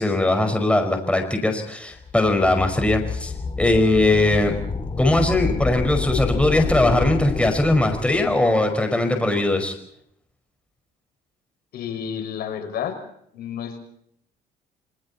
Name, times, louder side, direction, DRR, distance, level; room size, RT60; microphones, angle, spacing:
voice 1, 0.0-3.3 3.6-4.5 5.0-9.7, left 2 dB, 5° left, 5 dB, 5.2 m, -20 dB
sound 1, 2.0-8.5, left 4 dB, 30° left, 2.5 m, -28 dB
voice 2, 11.7-13.0 13.3-13.8, left 8 dB, 65° left, 5 dB, 5.8 m, -30 dB
27.0 x 26.5 x 4.3 m, 0.70 s
cardioid pair, 110°, 17 cm